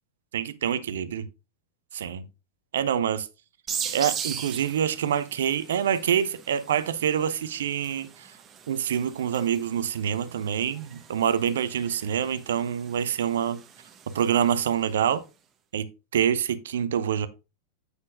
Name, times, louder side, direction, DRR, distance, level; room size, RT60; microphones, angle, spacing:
voice 1, 0.3-1.3 1.9-2.2 2.7-3.3 3.9-8.3 8.7-13.6 14.1-15.2 15.7-15.9 16.1-17.3, right 9 dB, 60° right, 0.6 m, -26 dB
sound 1, 3.7-15.0, right 7 dB, 25° right, 1.1 m, -40 dB
7.9 x 7.4 x 2.5 m
figure-of-eight pair, 90°, 0 cm